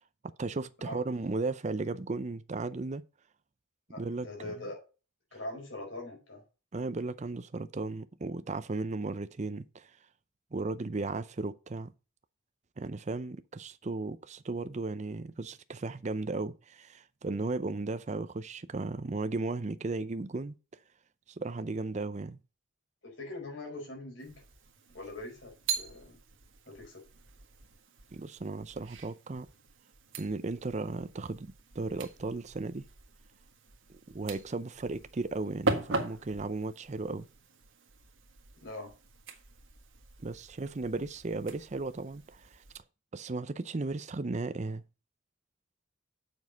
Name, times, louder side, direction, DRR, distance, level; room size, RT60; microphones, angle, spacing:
voice 1, 0.4-3.0 4.0-4.6 6.7-9.9 10.5-11.9 12.8-20.5 21.4-22.4 28.1-29.5 30.2-32.8 33.9-37.3 40.2-42.6 43.1-44.8, right 3 dB, 35° right, 0.5 m, -35 dB
voice 2, 3.9-4.8 5.3-6.4 23.0-24.4 24.9-26.2 26.7-27.0 38.6-38.9, left 2 dB, 65° left, 4.6 m, -42 dB
sound 1, 24.2-42.8, right 3 dB, 70° right, 1.6 m, -41 dB
7.4 x 6.2 x 5.1 m
head